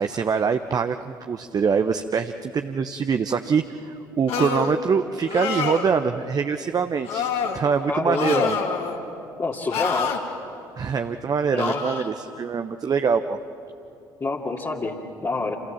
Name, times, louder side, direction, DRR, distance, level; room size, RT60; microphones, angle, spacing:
voice 1, 0.0-8.6 10.8-13.4, right 6 dB, 35° right, 8 dB, 1.0 m, -24 dB
sound 1, 4.3-4.8 5.3-5.9 7.0-7.6 8.1-9.0 9.7-10.2 11.6-12.1, left 6 dB, 60° left, 2.8 m, -27 dB
voice 2, 7.9-8.5 9.4-10.1 11.5-11.8 14.2-15.6, left 3 dB, 30° left, -5 dB, 2.6 m, -26 dB
29.0 x 28.0 x 7.3 m, 2.7 s
figure-of-eight pair, 50°, 11 cm